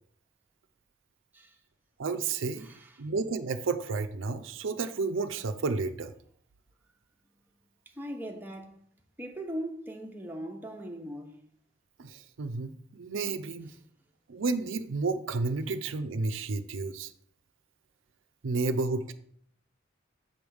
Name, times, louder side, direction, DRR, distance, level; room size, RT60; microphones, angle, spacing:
voice 1, 2.0-2.7 3.0-6.1 12.0-13.7 14.3-17.1 18.4-19.1, right 3 dB, 85° right, 0.6 m, -31 dB
voice 2, 2.6-3.1 7.9-8.8 9.2-11.4, right 1 dB, 10° right, 0.9 m, -39 dB
7.8 x 3.5 x 6.3 m
head